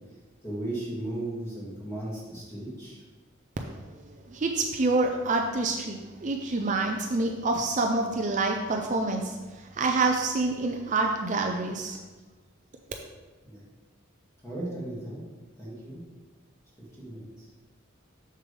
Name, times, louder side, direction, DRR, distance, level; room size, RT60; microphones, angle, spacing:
voice 1, 0.4-3.0 13.4-13.6 14.4-15.2 15.6-16.0 16.8-17.5, right 1 dB, 15° left, -7 dB, 2.2 m, -36 dB
voice 2, 4.3-9.4 9.7-12.0, right 3 dB, 35° right, 3 dB, 0.5 m, -27 dB
6.9 x 6.7 x 3.4 m, 1.3 s
head